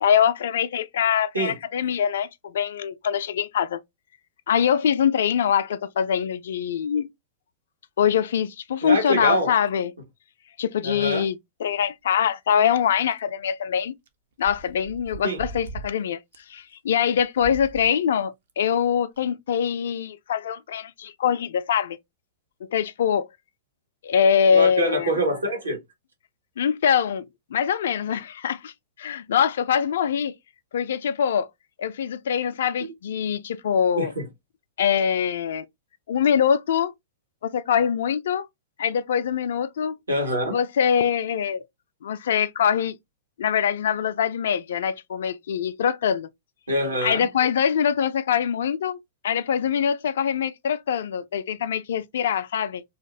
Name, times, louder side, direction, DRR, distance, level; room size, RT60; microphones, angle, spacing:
voice 1, 0.0-3.8 4.5-7.1 8.0-9.9 10.6-14.0 14.4-16.2 16.5-22.0 22.7-23.3 24.0-25.1 26.6-27.3 27.5-28.7 29.0-30.3 30.7-31.5 31.8-34.1 34.8-35.7 36.1-36.9 37.4-38.5 38.8-39.9 40.5-41.6 42.0-43.0 43.4-46.3 47.0-49.0 49.2-52.8, left 8 dB, 60° left, 0.3 m, -23 dB
voice 2, 8.8-9.5 10.8-11.2 15.2-15.4 24.5-25.8 32.8-32.9 34.0-34.3 40.1-40.6 46.7-47.3, right 1 dB, 75° right, 1.2 m, -25 dB
sound 1, 12.5-12.6 13.1-13.2 14.1-14.2 14.4-15.9 16.3-16.4 17.2-17.9 18.5-18.6 19.2-19.3, right 4 dB, 60° right, 0.6 m, -39 dB
2.8 x 2.5 x 3.5 m
figure-of-eight pair, 100°, 0 cm